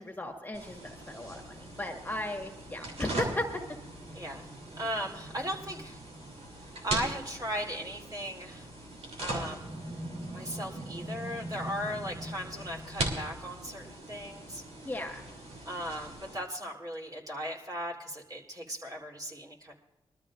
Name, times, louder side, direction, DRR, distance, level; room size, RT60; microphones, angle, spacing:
voice 1, 0.0-3.6 14.8-15.3, left 1 dB, 15° left, 3 dB, 1.7 m, -36 dB
sound 1, 0.5-16.4, right 1 dB, 80° right, 3.0 m, -40 dB
voice 2, 4.1-4.5 4.8-6.0 6.6-8.7 9.2-10.0 10.3-14.6 15.6-19.7, equal, 35° right, -1 dB, 3.3 m, -37 dB
22.0 x 13.0 x 2.5 m, 1.1 s
cardioid pair, 65°, 11 cm